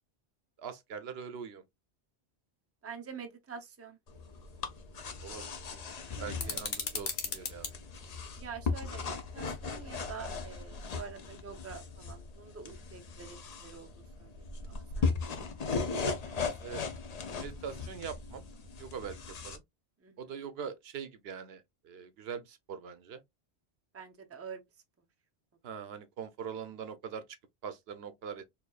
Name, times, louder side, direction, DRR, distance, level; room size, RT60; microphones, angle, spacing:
voice 1, 0.6-1.6 5.2-5.9 6.2-7.7 16.6-16.8 17.4-18.4 18.8-19.2 19.4-19.6 20.2-23.2 25.6-27.2 27.6-28.4, right 7 dB, 75° right, 0.8 m, -42 dB
voice 2, 2.8-4.0 6.1-6.6 8.4-13.9 14.2-15.1 16.0-16.5 20.0-20.2 23.9-24.6, right 6 dB, 15° right, 0.5 m, -47 dB
sound 1, 4.1-19.6, left 4 dB, 45° left, 0.6 m, -38 dB
sound 2, 6.4-7.7, left 5 dB, 65° left, 1.1 m, -36 dB
4.4 x 2.7 x 2.3 m
omnidirectional pair, 1.1 m